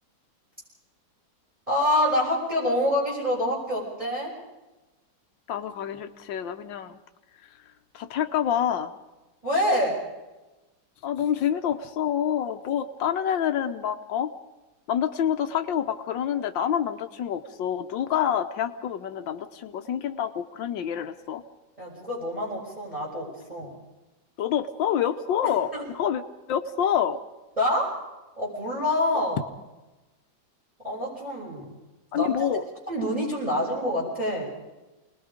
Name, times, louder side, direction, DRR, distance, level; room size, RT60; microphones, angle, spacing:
voice 1, 1.7-4.3 9.4-10.0 21.8-23.7 25.7-25.8 27.6-27.9 28.4-29.4 30.8-31.7 32.1-32.5 32.9-34.4, left 1 dB, 15° right, -6 dB, 6.0 m, -26 dB
voice 2, 5.5-7.0 7.9-8.9 11.0-14.3 14.9-21.4 24.4-26.2 26.5-27.2 32.1-32.6, left 9 dB, 90° left, 8 dB, 1.7 m, -27 dB
29.0 x 20.5 x 5.1 m, 1.1 s
omnidirectional pair, 2.0 m